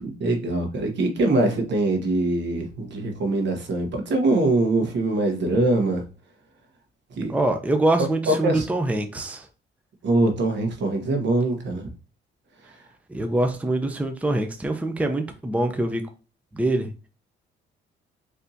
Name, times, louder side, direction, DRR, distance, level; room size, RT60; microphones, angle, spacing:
voice 1, 0.0-6.0 7.2-7.3 8.3-8.7 10.0-11.8, right 2 dB, 65° right, 1.5 m, -23 dB
voice 2, 7.3-9.5 13.1-16.0 16.5-16.9, right 2 dB, 5° right, 0.6 m, -24 dB
4.2 x 3.4 x 2.7 m
cardioid pair, 90°, 20 cm